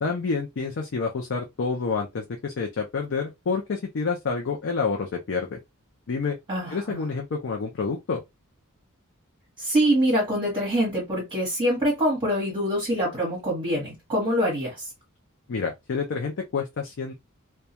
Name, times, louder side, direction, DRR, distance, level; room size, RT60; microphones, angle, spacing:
voice 1, 0.0-5.6 6.1-6.4 6.7-8.2 15.5-17.1, left 4 dB, 60° left, 0.5 m, -28 dB
voice 2, 6.5-7.0 9.6-14.9, equal, 25° right, 1.0 m, -25 dB
2.2 x 2.2 x 2.7 m
head